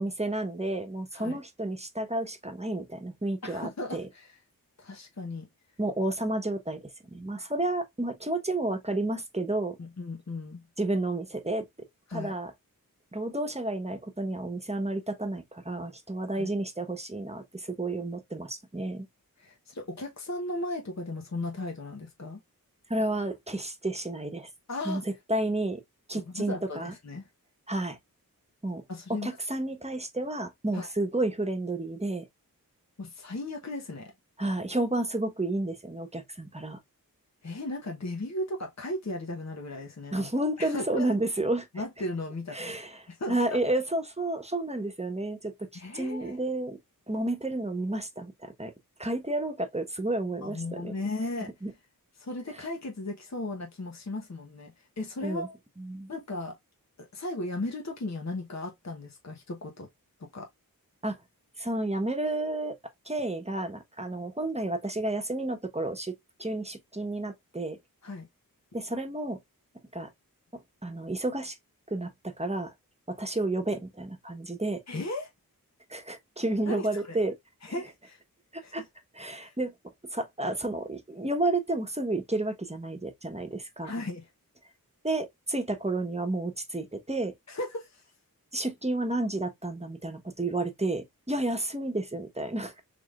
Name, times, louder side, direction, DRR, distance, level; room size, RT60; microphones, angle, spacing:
voice 1, 0.0-4.1 5.8-6.8 7.1-9.8 10.8-11.6 12.1-12.5 13.1-19.1 22.9-24.5 24.8-25.0 25.3-25.8 26.1-26.9 27.7-28.0 28.6-28.8 29.1-32.3 34.4-36.8 40.1-41.7 42.5-43.0 43.3-46.8 47.1-48.7 49.0-50.9 51.6-51.7 55.2-55.5 55.8-56.1 61.0-61.2 61.6-62.8 63.1-66.1 66.4-67.8 68.7-69.4 69.9-70.1 70.5-71.6 71.9-72.7 73.1-74.8 75.9-77.3 78.5-78.8 79.1-79.7 80.1-83.9 85.0-87.3 88.5-92.8, right 2 dB, 20° right, 1.1 m, -31 dB
voice 2, 3.4-4.4 4.8-5.5 9.8-10.6 12.1-12.3 16.3-16.5 19.4-22.4 24.7-25.0 26.1-27.3 28.9-29.3 30.7-30.9 33.0-34.1 37.4-40.3 40.6-41.1 41.7-42.8 43.1-43.6 45.7-46.4 50.4-51.5 52.2-55.5 56.1-56.6 57.0-59.9 60.2-60.5 68.0-68.3 74.9-75.3 76.7-77.2 77.6-78.2 78.6-78.9 79.4-79.5 83.8-84.3 87.5-88.0, left 2 dB, 50° left, 1.1 m, -36 dB
4.9 x 3.4 x 2.4 m
wide cardioid pair, 55°, 36 cm